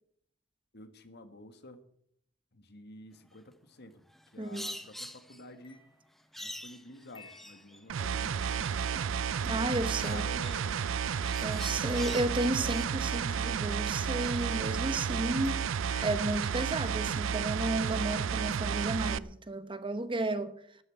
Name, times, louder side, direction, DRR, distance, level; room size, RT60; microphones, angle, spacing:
voice 1, 0.7-1.8 2.5-4.0 4.3-5.8 6.4-9.1 10.0-10.9 11.2-11.8, left 1 dB, 60° left, 1.7 m, -50 dB
sound 1, 4.1-5.4 6.3-7.9 8.3-9.2 9.9-12.4 12.7-12.9, equal, ahead, 0.8 m, -45 dB
voice 2, 4.4-4.8 9.5-10.3 11.4-15.6 16.0-20.6, right 2 dB, 25° right, 0.9 m, -33 dB
sound 2, 5.5-11.4 11.9-15.1 15.4-16.1, left 5 dB, 25° left, 2.2 m, -56 dB
sound 3, 7.9-19.2, right 7 dB, 90° right, 0.5 m, -32 dB
13.0 x 9.0 x 8.4 m
head